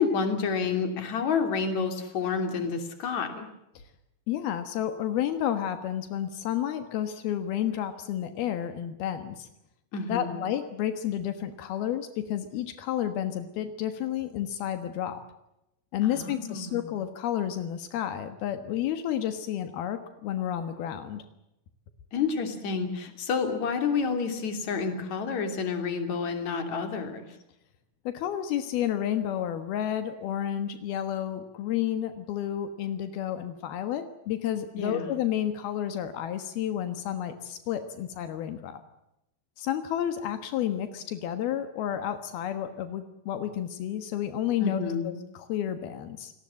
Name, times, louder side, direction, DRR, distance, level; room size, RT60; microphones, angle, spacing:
voice 1, 0.0-3.5 9.9-10.4 16.0-17.0 22.1-27.3 34.8-35.2 44.6-45.1, left 5 dB, 50° left, 7 dB, 4.1 m, -29 dB
voice 2, 4.3-9.5 10.1-15.2 15.9-21.2 28.0-38.8 39.6-46.3, left 10 dB, 85° left, 9 dB, 3.3 m, -31 dB
29.5 x 19.0 x 7.6 m, 0.86 s
omnidirectional pair, 4.3 m